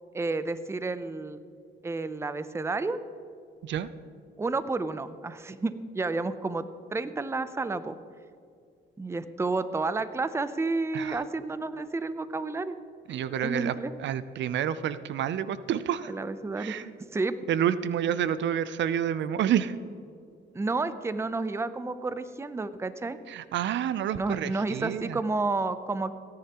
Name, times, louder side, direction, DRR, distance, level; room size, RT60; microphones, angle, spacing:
voice 1, 0.1-1.4 1.8-3.0 4.4-8.0 9.0-12.8 13.4-13.9 16.0-16.8 17.1-17.3 20.5-23.2 24.2-26.1, right 3 dB, 15° right, 13 dB, 0.5 m, -31 dB
voice 2, 13.1-16.1 16.6-16.9 17.5-19.8 23.3-25.2, right 9 dB, 65° right, 15 dB, 0.5 m, -29 dB
17.0 x 10.0 x 2.9 m, 2.3 s
cardioid pair, 90°, 20 cm